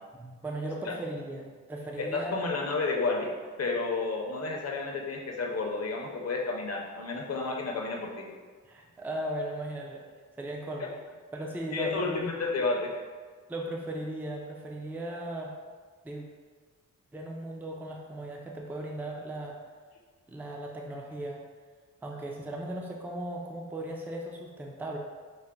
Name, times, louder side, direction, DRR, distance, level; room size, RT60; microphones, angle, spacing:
voice 1, 0.1-2.5 8.7-10.0 10.4-10.9 11.3-12.2 13.5-15.5 16.0-16.2 17.1-19.6 20.3-21.4 22.0-25.0, right 1 dB, 5° right, 0 dB, 0.3 m, -37 dB
voice 2, 2.0-3.3 3.6-8.2 11.7-12.9, left 3 dB, 50° left, 1 dB, 0.6 m, -31 dB
5.5 x 2.0 x 3.6 m, 1.5 s
wide cardioid pair, 140°, 32 cm